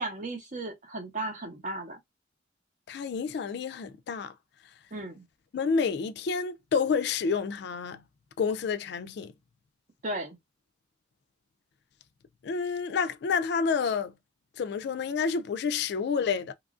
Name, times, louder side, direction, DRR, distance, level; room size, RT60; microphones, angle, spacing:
voice 1, 0.0-2.0 4.9-5.3 10.0-10.4, right 2 dB, 45° right, 0.8 m, -35 dB
voice 2, 2.9-4.3 5.5-8.0 8.4-9.3 12.4-14.1 14.6-16.5, left 5 dB, 60° left, 0.3 m, -29 dB
3.0 x 2.4 x 2.4 m
head